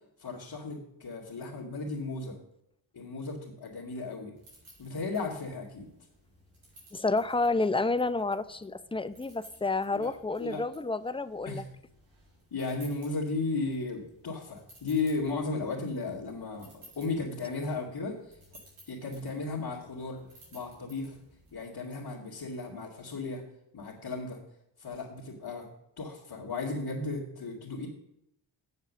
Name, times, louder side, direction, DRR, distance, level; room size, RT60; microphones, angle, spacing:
voice 1, 0.2-2.4 2.9-4.3 4.8-5.9 9.9-10.1 10.4-10.6 11.5-11.6 12.5-18.4 18.9-20.2 20.5-21.2 21.5-23.4 23.7-24.4 24.8-25.7 26.0-27.9, left 3 dB, 55° left, -5 dB, 2.2 m, -35 dB
sound 1, 4.3-21.6, right 1 dB, 80° right, 4.7 m, -58 dB
voice 2, 6.9-11.6, left 3 dB, 10° left, 14 dB, 0.6 m, -30 dB
7.4 x 6.8 x 7.3 m, 0.80 s
supercardioid pair, 45°, 49 cm